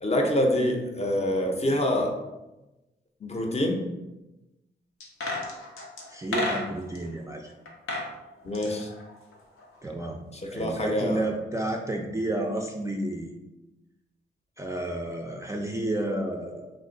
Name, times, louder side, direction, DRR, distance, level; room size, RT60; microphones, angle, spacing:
voice 1, 0.0-2.2 3.2-3.8 8.4-8.9 10.3-11.2, left 1 dB, 30° left, 2 dB, 0.6 m, -26 dB
sound 1, 5.0-7.0 7.7-8.1 8.4-9.8 10.0-10.1, left 2 dB, 90° left, 0.6 m, -33 dB
voice 2, 6.1-7.5 9.8-10.2 10.5-13.3 14.6-16.7, right 1 dB, 15° right, 1 dB, 0.3 m, -31 dB
2.5 x 2.2 x 3.7 m, 1.0 s
cardioid pair, 65°, 21 cm